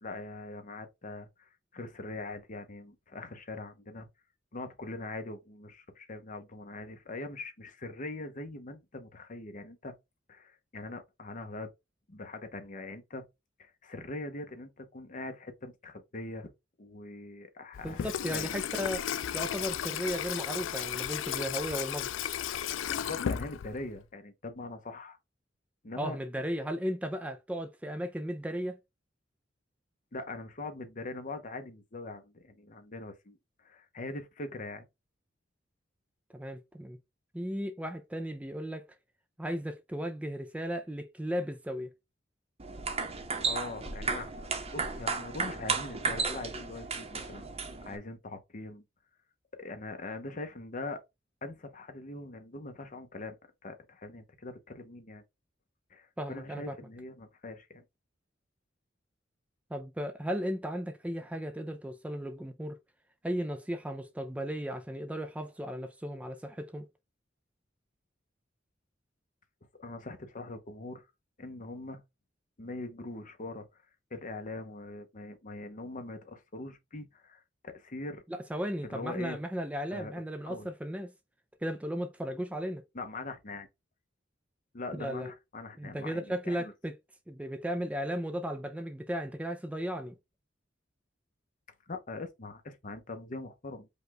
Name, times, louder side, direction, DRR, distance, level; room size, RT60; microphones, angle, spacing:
voice 1, 0.0-4.1 4.5-9.9 10.3-11.7 12.1-13.2 13.6-16.5 16.8-18.6 22.9-25.2 25.8-26.2 30.1-34.8 43.4-44.5 44.7-47.5 47.8-48.8 49.6-51.0 51.4-53.3 53.6-55.2 55.9-57.8 69.8-71.0 71.4-72.0 72.6-73.8 74.1-78.2 78.8-79.4 79.9-80.1 80.5-80.7 82.9-83.7 84.7-86.7 91.9-93.9, left 2 dB, 45° left, 0.9 m, -42 dB
Water tap faucet / Sink (filling or washing), 17.7-24.0, left 9 dB, 85° left, 0.4 m, -34 dB
voice 2, 17.8-19.1 19.3-22.1 26.0-28.8 36.3-37.0 37.3-38.8 39.4-41.9 56.2-56.8 59.7-62.8 63.2-66.9 78.3-81.1 81.6-82.8 84.9-85.3 85.8-86.9 87.3-90.2, equal, 5° right, 0.4 m, -35 dB
sound 1, 42.6-48.0, right 4 dB, 35° right, 0.9 m, -34 dB
5.3 x 2.4 x 3.9 m
head